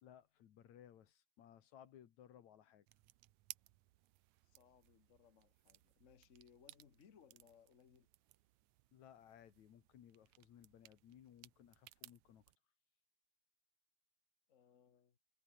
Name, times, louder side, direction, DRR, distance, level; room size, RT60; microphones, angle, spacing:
voice 1, 0.0-2.9 8.9-12.4, left 10 dB, 75° left, 3.0 m, -61 dB
sound 1, 2.9-12.6, right 18 dB, 80° right, 2.0 m, -62 dB
voice 2, 4.4-8.1 14.5-15.2, left 7 dB, 45° left, 1.0 m, -67 dB
omnidirectional pair, 3.3 m